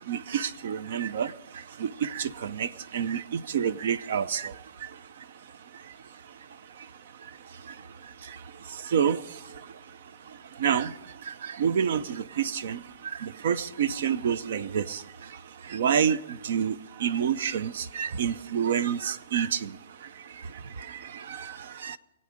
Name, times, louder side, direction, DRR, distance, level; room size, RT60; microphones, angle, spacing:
voice 1, 0.0-22.0, right 8 dB, 65° right, 0.7 m, -30 dB
24.5 x 8.6 x 5.1 m
hypercardioid pair, 150°, 0 cm